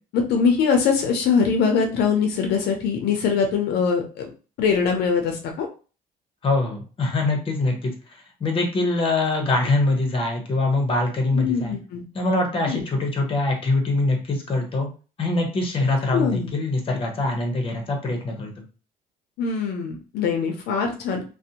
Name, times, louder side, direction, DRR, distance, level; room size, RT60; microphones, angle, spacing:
voice 1, 0.1-4.3 4.6-5.7 11.3-12.0 12.7-12.8 16.1-16.5 19.4-21.2, left 6 dB, 75° left, 3 dB, 0.5 m, -22 dB
voice 2, 6.4-11.7 12.1-14.9 15.2-18.5, left 2 dB, 30° left, 2 dB, 0.8 m, -23 dB
2.5 x 2.1 x 2.8 m, 0.35 s
cardioid pair, 110°, 17 cm